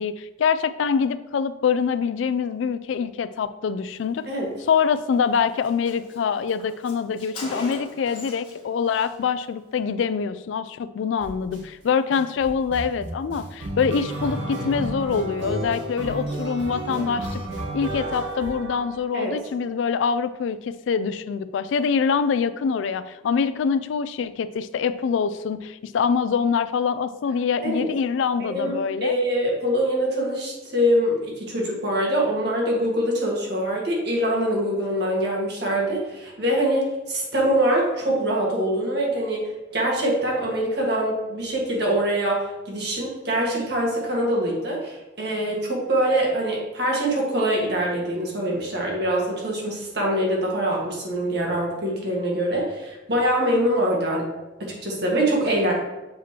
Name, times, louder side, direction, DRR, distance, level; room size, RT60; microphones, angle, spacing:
voice 1, 0.0-4.3 4.7-17.4 17.7-29.1, left 6 dB, 75° left, 13 dB, 0.3 m, -25 dB
Car, 4.9-5.1 5.3-5.4 5.6-8.6 8.9-9.1, left 1 dB, 25° left, 1.7 m, -39 dB
sound 1, 11.2-11.6 12.1-19.3, right 1 dB, 75° right, 1.4 m, -32 dB
voice 2, 28.4-54.3 54.6-55.7, right 1 dB, 55° right, -2 dB, 1.6 m, -24 dB
7.0 x 5.0 x 2.9 m, 1.1 s
head